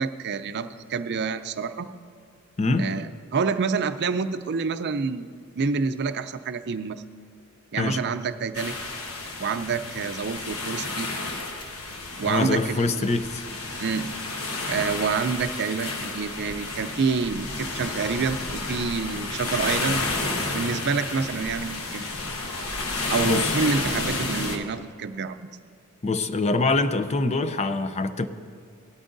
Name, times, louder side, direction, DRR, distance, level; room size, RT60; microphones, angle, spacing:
voice 1, 0.0-1.9 2.8-5.3 5.6-7.0 7.7-8.8 9.4-11.1 12.2-13.1 13.8-14.1 14.7-20.0 20.5-22.1 23.1-25.5, right 5 dB, 55° right, 10 dB, 0.5 m, -27 dB
voice 2, 2.6-2.9 7.8-8.0 12.3-13.4 23.2-23.5 26.0-28.3, left 3 dB, 30° left, 11 dB, 0.5 m, -24 dB
sound 1, 8.5-24.6, left 2 dB, 80° left, 1.2 m, -31 dB
17.5 x 12.5 x 2.6 m, 2.2 s
head